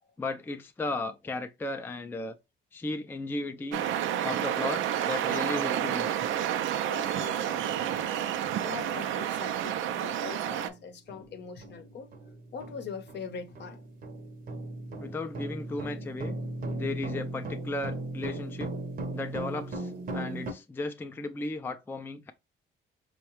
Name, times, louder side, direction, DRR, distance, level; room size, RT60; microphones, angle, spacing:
voice 1, 0.2-2.4 2.7-3.8 4.2-6.1 15.0-16.4 16.7-18.7 19.1-22.3, left 2 dB, 10° left, 0.3 m, -35 dB
sound 1, 3.7-10.7, right 10 dB, 80° right, 0.4 m, -30 dB
voice 2, 6.8-8.2 8.6-12.1 12.5-13.8, left 6 dB, 60° left, 0.7 m, -42 dB
sound 2, 9.9-10.0 10.5-10.7 11.1-20.5, right 2 dB, 45° right, 0.7 m, -37 dB
4.6 x 2.1 x 2.9 m
cardioid pair, 90°, 20 cm